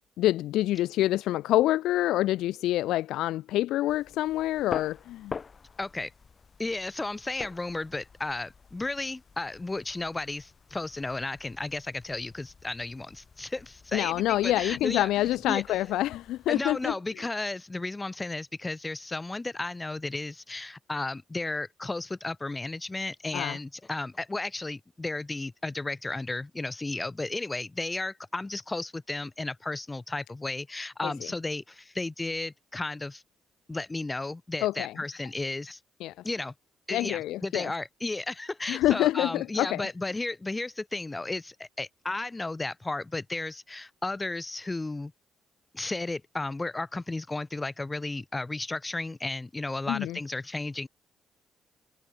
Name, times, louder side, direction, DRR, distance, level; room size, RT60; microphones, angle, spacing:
voice 1, 0.2-5.4 13.9-16.9 23.3-23.6 31.0-31.3 34.6-34.9 36.0-36.1 36.9-37.7 38.7-39.9 49.9-50.2, left 15 dB, 90° left, 0.4 m, -27 dB
sound 1, 3.9-17.0, left 5 dB, 40° left, 2.7 m, -47 dB
voice 2, 5.8-6.1 6.6-15.1 15.5-15.8 16.5-33.2 33.7-35.8 36.2-36.5 36.9-45.1 45.7-50.9, left 2 dB, 20° left, 3.8 m, -34 dB
cardioid pair, 90°, 0 cm